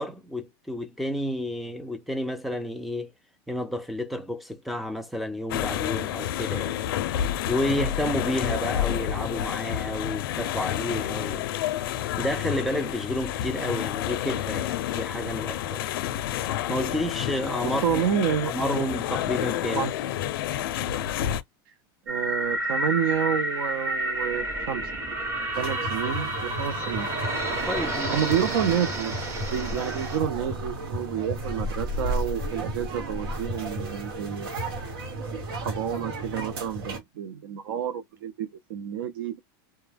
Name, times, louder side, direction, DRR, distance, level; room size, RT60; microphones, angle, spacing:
voice 1, 0.0-3.1 3.5-6.7 7.5-11.5 12.2-15.8 16.7-18.0 18.5-19.9 27.7-28.2 29.8-29.9, equal, ahead, 0.3 m, -30 dB
sound 1, 5.5-21.4, left 11 dB, 75° left, 0.4 m, -29 dB
voice 2, 17.6-18.8 19.7-19.9 22.1-24.9 25.5-27.1 28.1-29.2 29.5-34.5 35.5-39.4, right 9 dB, 70° right, 0.5 m, -29 dB
sound 2, 22.1-30.2, right 1 dB, 20° right, 0.9 m, -30 dB
sound 3, 25.5-37.0, right 1 dB, 90° right, 1.1 m, -33 dB
2.1 x 2.1 x 3.2 m
supercardioid pair, 155°, 12 cm